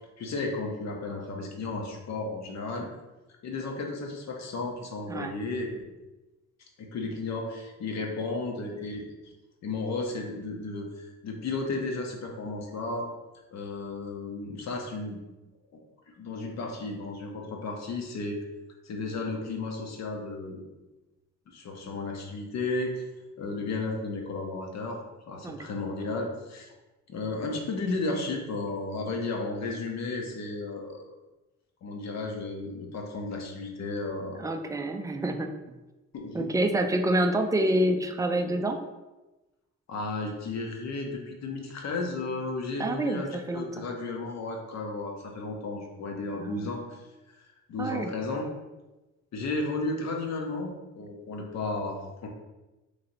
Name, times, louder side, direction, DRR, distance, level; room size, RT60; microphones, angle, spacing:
voice 1, 0.2-2.9 3.4-5.9 6.8-9.1 9.6-13.1 13.5-15.2 16.2-18.4 18.8-20.6 21.5-23.0 23.4-25.0 25.3-26.7 27.1-31.0 31.8-34.5 36.1-36.5 39.9-47.0 47.7-48.5 49.3-52.3, left 3 dB, 60° left, 1 dB, 0.9 m, -33 dB
voice 2, 34.4-35.5 36.3-38.8 42.8-43.9 46.4-46.7 47.8-48.1, right 1 dB, 10° right, 6 dB, 0.3 m, -27 dB
3.2 x 2.8 x 4.0 m, 1.1 s
cardioid pair, 90°, 30 cm